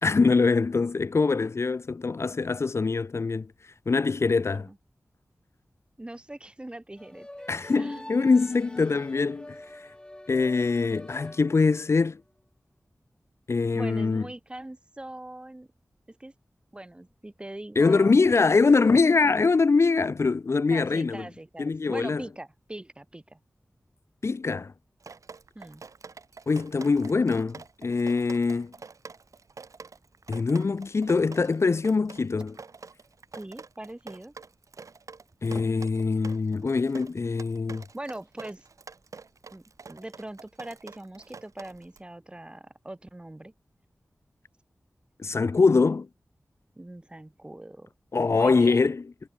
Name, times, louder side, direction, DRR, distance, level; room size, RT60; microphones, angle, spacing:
voice 1, 0.0-3.5 3.9-4.7 7.5-9.6 10.3-12.2 13.5-14.3 17.8-21.2 21.6-22.2 24.2-24.7 26.5-28.7 30.3-32.6 35.4-37.8 45.2-46.1 48.1-49.0, left 4 dB, 55° left, 0.6 m, -23 dB
voice 2, 6.0-7.3 7.8-8.5 13.7-15.7 16.1-16.3 16.7-18.2 20.7-23.4 25.5-25.8 33.3-34.3 37.9-38.7 39.5-39.6 39.9-43.5 46.8-47.9 48.3-48.8, right 1 dB, 20° right, 0.8 m, -41 dB
sound 1, 7.0-12.0, left 1 dB, 15° left, 2.6 m, -46 dB
Drip, 25.0-42.0, right 4 dB, 80° right, 1.5 m, -46 dB
wide cardioid pair, 90°, 5 cm